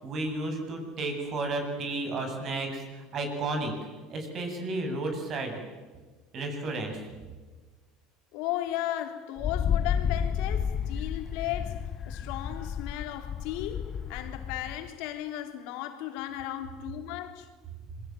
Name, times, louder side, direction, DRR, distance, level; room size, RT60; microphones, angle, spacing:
voice 1, 0.0-2.8 3.1-3.7 4.1-5.6 6.3-7.0, right 2 dB, 40° right, 7.8 m, -32 dB
voice 2, 8.3-17.5, left 13 dB, 70° left, 3.5 m, -35 dB
Wind, 9.4-14.9, left 8 dB, 35° left, 1.3 m, -31 dB
26.5 x 23.0 x 9.3 m
supercardioid pair, 120°, 0 cm